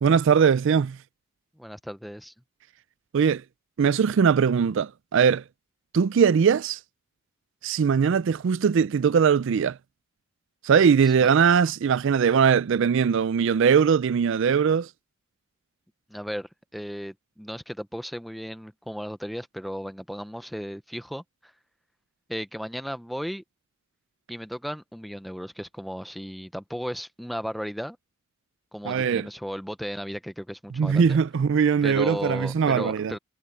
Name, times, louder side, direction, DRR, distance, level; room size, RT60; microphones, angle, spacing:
voice 1, 0.0-1.0 3.1-3.4 3.8-5.4 5.9-6.8 7.6-9.8 10.6-14.9 28.8-29.3 30.8-33.1, right 6 dB, 60° right, 0.4 m, -21 dB
voice 2, 1.6-2.3 11.0-11.3 16.1-21.5 22.3-23.4 24.3-28.0 28.7-31.2 31.8-33.2, equal, ahead, 0.7 m, -35 dB
head